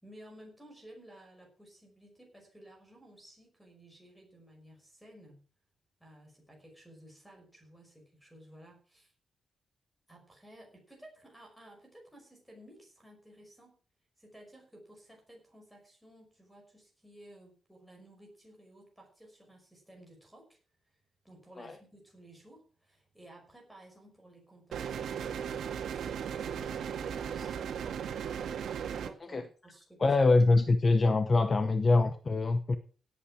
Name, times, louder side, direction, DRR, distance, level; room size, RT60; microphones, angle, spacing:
voice 1, 0.0-5.4 6.0-9.1 10.1-13.8 14.2-20.6 21.2-28.2 28.9-30.0 31.4-31.5, right 1 dB, ahead, 5.6 m, -55 dB
sound 1, 24.7-29.1, right 8 dB, 85° right, 1.9 m, -36 dB
voice 2, 30.0-32.8, left 3 dB, 25° left, 0.9 m, -24 dB
17.5 x 8.7 x 4.9 m
wide cardioid pair, 175°, 0 cm